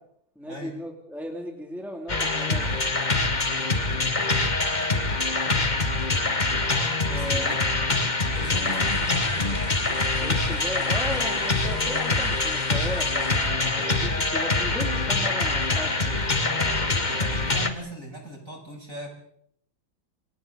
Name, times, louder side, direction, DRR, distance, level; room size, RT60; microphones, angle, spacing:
voice 1, 0.3-2.7 7.0-7.6 8.6-8.9 10.2-16.2, equal, ahead, 1 dB, 3.1 m, -36 dB
sound 1, 2.1-17.7, left 3 dB, 20° left, 1.7 m, -24 dB
voice 2, 7.2-7.8 8.4-9.1 16.4-19.1, right 1 dB, 35° right, -1 dB, 8.6 m, -39 dB
sound 2, 8.3-13.5, left 3 dB, 90° left, 5.0 m, -41 dB
29.5 x 26.5 x 4.2 m, 0.69 s
omnidirectional pair, 2.3 m